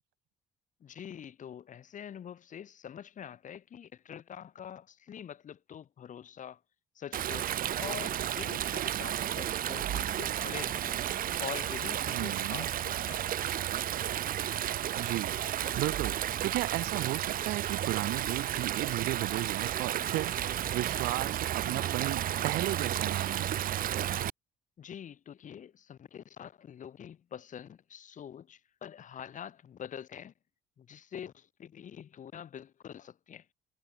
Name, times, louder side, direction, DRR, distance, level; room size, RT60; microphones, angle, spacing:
voice 1, 0.8-6.6 6.9-7.5 7.8-11.0 11.4-13.3 24.8-30.3 30.8-33.5, left 9 dB, 50° left, 4.1 m, -45 dB
Stream, 7.1-24.3, right 11 dB, 55° right, 1.7 m, -32 dB
voice 2, 12.1-12.7 14.9-23.5, right 18 dB, 85° right, 4.3 m, -35 dB
cardioid pair, 110°, 17 cm